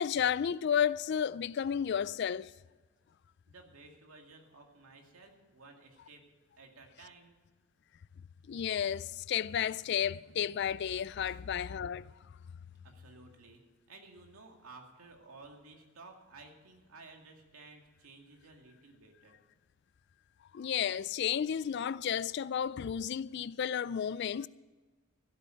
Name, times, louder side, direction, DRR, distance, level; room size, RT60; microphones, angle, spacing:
voice 1, 0.0-2.5 8.5-12.1 20.5-24.5, left 8 dB, 50° left, 0.3 m, -32 dB
voice 2, 3.5-6.2 6.6-7.4 11.3-11.4 12.8-13.6 13.9-19.4, right 3 dB, 90° right, 2.3 m, -55 dB
15.0 x 8.5 x 6.4 m
head